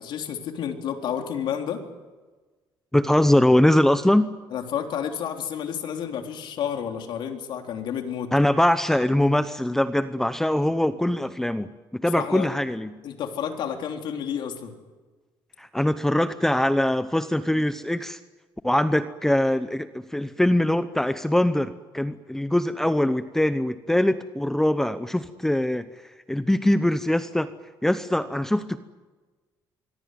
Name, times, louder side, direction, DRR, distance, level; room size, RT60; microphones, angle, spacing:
voice 1, 0.0-1.8 4.5-8.3 12.1-12.5 13.0-14.7, left 8 dB, 70° left, 3 dB, 3.8 m, -30 dB
voice 2, 2.9-4.3 8.3-11.7 11.9-12.9 15.6-18.2 18.6-25.9 26.3-27.5 27.8-28.8, left 1 dB, 5° left, 11 dB, 0.9 m, -22 dB
25.5 x 21.5 x 9.4 m, 1.3 s
cardioid pair, 135°, 9 cm